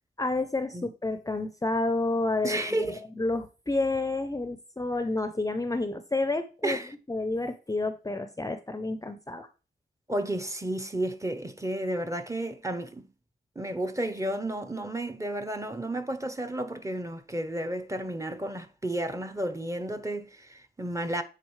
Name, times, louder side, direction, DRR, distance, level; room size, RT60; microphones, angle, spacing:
voice 1, 0.2-6.8 7.1-9.5, left 2 dB, 20° left, 0.5 m, -30 dB
voice 2, 2.4-3.0 6.6-6.9 10.1-13.1 13.6-21.2, right 1 dB, 20° right, 0.7 m, -32 dB
9.3 x 4.0 x 3.1 m
wide cardioid pair, 85°, 17 cm